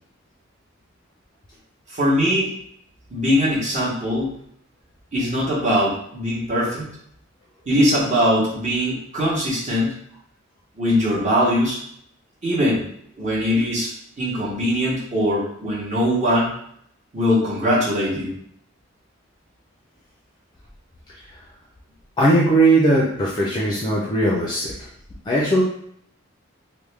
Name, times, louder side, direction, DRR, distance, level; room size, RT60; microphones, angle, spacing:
voice 1, 1.9-2.5 3.1-4.3 5.1-6.9 7.7-9.9 10.8-11.8 12.4-12.8 13.2-13.9 14.2-16.5 17.1-18.3, equal, 35° right, -7 dB, 1.0 m, -21 dB
voice 2, 22.2-24.7 25.3-25.6, right 1 dB, 20° left, -4 dB, 0.4 m, -18 dB
3.4 x 2.1 x 3.2 m, 0.69 s
head